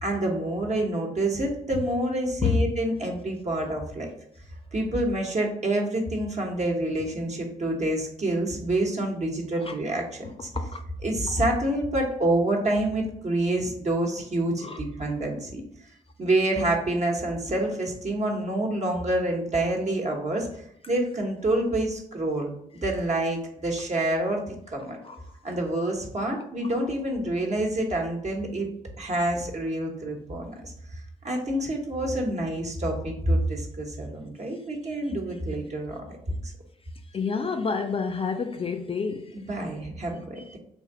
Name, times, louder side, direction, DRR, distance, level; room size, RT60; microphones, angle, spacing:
voice 1, 0.0-4.1 4.7-10.5 11.0-15.6 16.2-20.5 20.9-22.5 22.8-25.0 25.4-28.7 29.0-30.7 31.2-36.1 39.3-40.6, right 1 dB, 40° right, 1.1 m, -27 dB
voice 2, 10.2-10.8 14.6-14.8 25.0-25.2 37.1-39.4, left 4 dB, 30° left, 0.4 m, -28 dB
3.4 x 2.6 x 3.7 m
hypercardioid pair, 40°, 18 cm